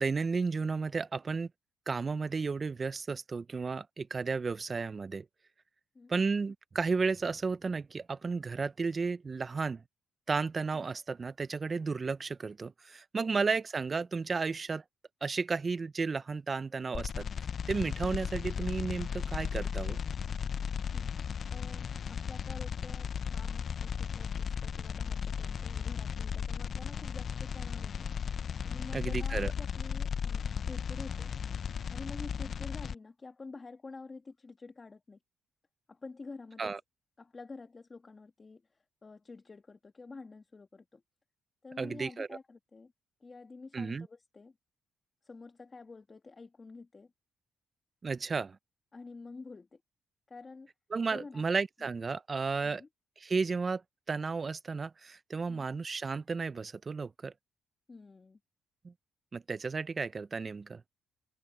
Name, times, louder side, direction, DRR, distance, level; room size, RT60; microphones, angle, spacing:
voice 1, 0.0-1.5 1.9-5.2 6.1-9.8 10.3-14.8 15.2-17.3 17.7-20.0 28.9-29.5 36.6-36.8 41.8-42.4 43.7-44.1 48.0-48.6 50.9-52.8 53.2-53.8 54.1-57.3 58.8-58.9 59.3-60.8, right 4 dB, 35° right, 0.5 m, -33 dB
sound 1, 16.9-32.9, left 7 dB, 50° left, 0.5 m, -35 dB
voice 2, 21.5-28.1 28.6-31.3 31.9-35.2 35.9-36.7 37.2-38.6 39.0-41.0 41.6-42.9 43.2-44.5 45.2-47.1 48.9-49.8 50.3-50.7 51.1-51.4 52.6-52.9 55.5-55.6 57.9-58.4, left 3 dB, 30° left, 1.6 m, -48 dB
cardioid pair, 90°, 0 cm